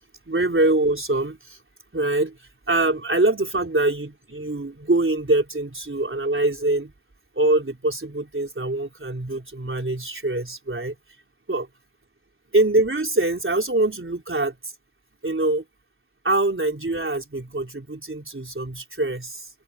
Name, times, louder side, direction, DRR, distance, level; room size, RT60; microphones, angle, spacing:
voice 1, 0.3-1.6 1.9-2.4 2.7-6.9 7.4-11.0 11.5-11.7 12.5-14.7 15.2-15.6 16.2-19.5, right 2 dB, 25° right, 3.9 m, -24 dB
open air
cardioid pair, 45°, 45 cm